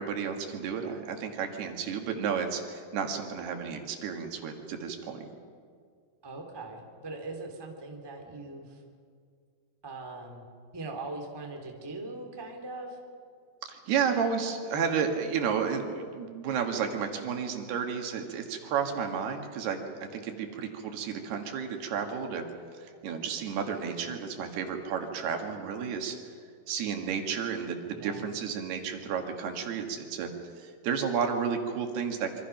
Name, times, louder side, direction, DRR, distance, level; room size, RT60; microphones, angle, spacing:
voice 1, 0.0-5.3 13.7-19.8 20.1-22.4 22.7-26.2 26.7-30.3 30.6-32.4, right 6 dB, 75° right, 4 dB, 3.8 m, -32 dB
voice 2, 6.2-8.8 9.8-10.5 10.7-13.0 27.9-28.2, right 2 dB, 10° right, 1 dB, 2.0 m, -41 dB
26.5 x 24.5 x 6.0 m, 2.1 s
omnidirectional pair, 4.6 m